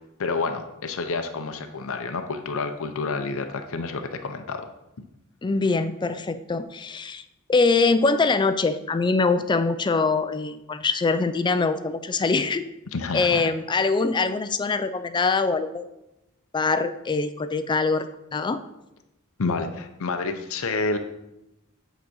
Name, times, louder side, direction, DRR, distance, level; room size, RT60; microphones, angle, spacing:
voice 1, 0.2-4.7 5.0-5.1 12.9-13.5 19.4-21.0, left 4 dB, 65° left, 6 dB, 0.6 m, -29 dB
voice 2, 5.4-7.2 7.5-12.7 13.1-15.8 16.5-18.6, left 4 dB, 20° left, 11 dB, 0.3 m, -23 dB
8.6 x 4.0 x 6.2 m, 0.91 s
head